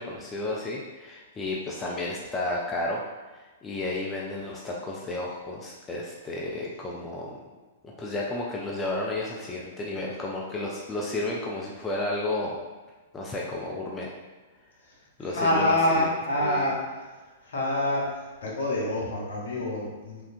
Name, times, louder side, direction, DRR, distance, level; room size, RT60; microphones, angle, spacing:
voice 1, 0.0-3.0 3.3-7.4 8.0-12.6 13.1-14.1 15.2-16.1 16.4-16.7, left 2 dB, 15° left, -3 dB, 0.4 m, -32 dB
voice 2, 15.2-16.8 17.4-20.2, left 1 dB, 65° left, -4 dB, 0.9 m, -26 dB
3.2 x 2.4 x 2.5 m, 1.3 s
figure-of-eight pair, 105°, 0 cm